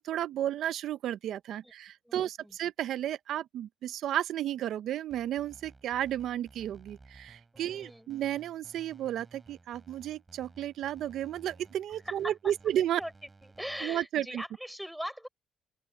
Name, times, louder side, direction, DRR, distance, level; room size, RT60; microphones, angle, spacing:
voice 1, 0.0-13.0 13.8-14.4, right 11 dB, 75° right, 0.5 m, -33 dB
voice 2, 2.1-2.6 7.5-8.1 12.1-12.3 13.0-13.1 13.6-15.3, equal, ahead, 5.3 m, -40 dB
sound 1, 5.1-13.8, right 3 dB, 25° right, 3.4 m, -56 dB
open air
cardioid pair, 90°, 0 cm